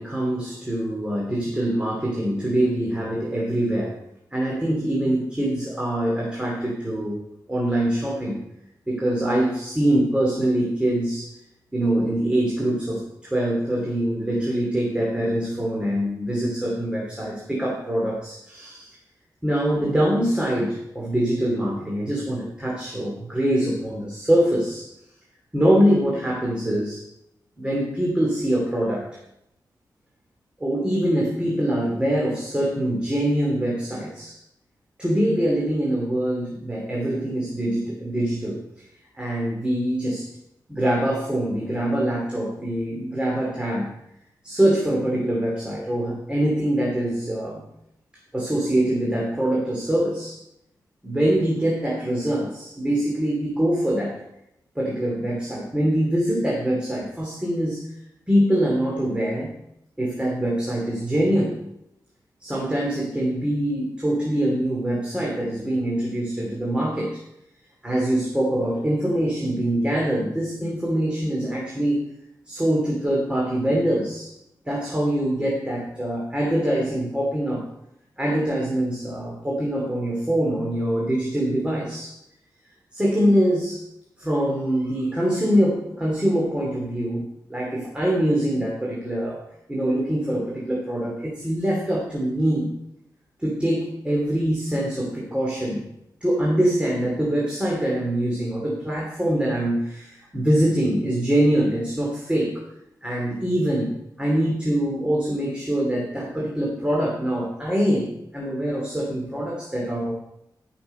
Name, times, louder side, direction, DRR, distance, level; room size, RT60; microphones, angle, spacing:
voice 1, 0.0-3.9 4.3-7.2 7.5-8.4 8.9-11.3 11.7-19.0 19.4-24.9 25.5-27.0 27.6-29.0 30.6-34.3 35.0-38.8 39.1-40.3 40.7-43.9 44.4-47.6 48.3-50.4 51.0-54.2 54.7-57.8 58.3-59.5 60.0-61.6 62.4-67.2 67.8-72.0 72.5-74.3 74.7-77.6 78.2-82.2 82.9-83.8 84.2-87.2 87.5-89.4 89.7-92.7 93.4-95.8 96.2-102.6 103.0-110.1, right 1 dB, 15° right, -3 dB, 2.6 m, -24 dB
13.5 x 6.0 x 5.3 m, 0.81 s
wide cardioid pair, 105°, 7 cm